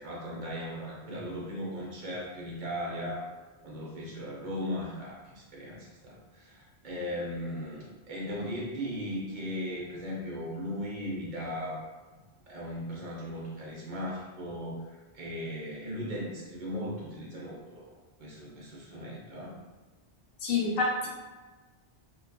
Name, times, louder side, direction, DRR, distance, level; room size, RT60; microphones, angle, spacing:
voice 1, 0.0-3.3 3.6-11.9 12.5-17.9 18.2-19.5, equal, 55° right, -4 dB, 0.7 m, -37 dB
voice 2, 20.4-21.1, left 3 dB, 70° left, -2 dB, 0.8 m, -27 dB
2.7 x 2.2 x 2.2 m, 1.3 s
omnidirectional pair, 1.0 m